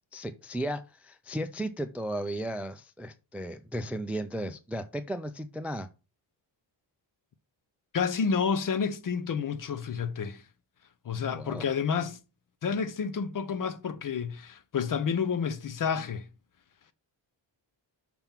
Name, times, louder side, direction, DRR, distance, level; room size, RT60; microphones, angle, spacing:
voice 1, 0.1-5.9 11.2-11.6, right 1 dB, 5° right, 0.3 m, -35 dB
voice 2, 7.9-10.4 11.0-12.2 12.6-16.3, left 6 dB, 45° left, 0.6 m, -30 dB
5.9 x 3.5 x 5.7 m
wide cardioid pair, 140°, 46 cm